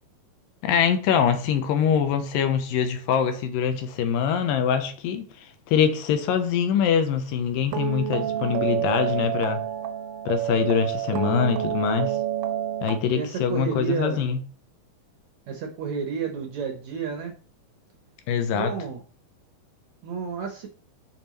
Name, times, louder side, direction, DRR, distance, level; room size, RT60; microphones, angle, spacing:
voice 1, 0.6-9.6 10.3-12.2 12.8-14.4 18.3-18.7, left 8 dB, 80° left, 2.4 m, -24 dB
sound 1, 7.7-13.0, right 11 dB, 90° right, 2.4 m, -28 dB
voice 2, 11.3-11.6 13.1-14.3 15.5-17.3 18.5-19.0 20.0-20.7, right 6 dB, 70° right, 1.7 m, -31 dB
8.6 x 5.4 x 3.1 m
omnidirectional pair, 4.1 m